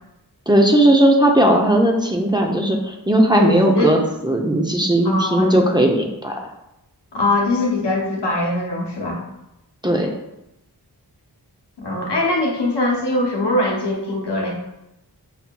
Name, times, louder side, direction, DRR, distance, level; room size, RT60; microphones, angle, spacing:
voice 1, 0.5-6.4 9.8-10.1, right 1 dB, 10° right, 1 dB, 0.5 m, -17 dB
voice 2, 3.3-4.0 5.0-5.5 7.1-9.2 11.8-14.5, left 2 dB, 90° left, -2 dB, 0.9 m, -22 dB
5.7 x 2.7 x 2.2 m, 0.87 s
wide cardioid pair, 45°, 40 cm